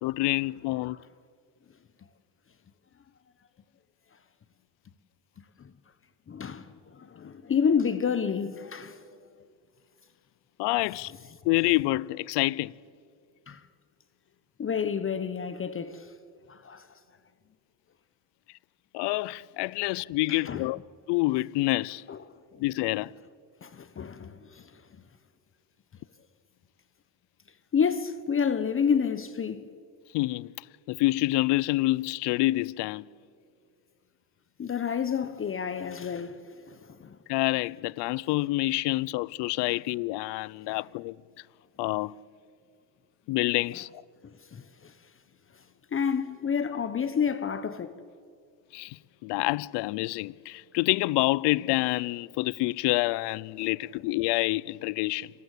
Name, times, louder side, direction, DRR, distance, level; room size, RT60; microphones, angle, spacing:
voice 1, 0.0-1.0 10.6-11.1 11.4-12.7 18.9-20.8 21.1-22.0 22.6-23.1 30.1-33.1 37.3-41.2 41.8-42.1 43.3-44.0 48.7-55.3, left 20 dB, 75° left, 0.7 m, -27 dB
voice 2, 6.3-9.0 13.5-13.6 14.6-16.1 16.5-16.9 20.3-20.7 22.1-22.2 22.5-22.6 23.6-24.7 27.7-29.7 34.6-37.2 40.7-40.8 44.5-44.9 45.9-47.9, left 7 dB, 30° left, 1.1 m, -29 dB
27.0 x 20.0 x 8.2 m
cardioid pair, 110°, 42 cm